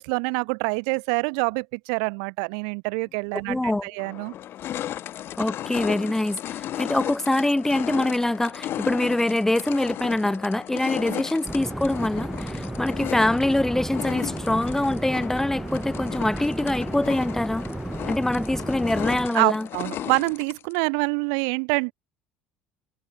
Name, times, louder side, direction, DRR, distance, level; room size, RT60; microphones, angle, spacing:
voice 1, 0.0-4.3 11.1-11.2 19.3-21.9, right 40 dB or more, 65° right, 1.3 m, -26 dB
sound 1, 3.4-3.5 4.0-20.8, left 12 dB, 50° left, 7.2 m, -35 dB
voice 2, 3.5-3.9 5.4-17.6 18.1-19.7, left 1 dB, 10° left, 0.6 m, -24 dB
sound 2, 11.4-19.3, right 1 dB, 10° right, 1.7 m, -33 dB
hypercardioid pair, 65°, 5 cm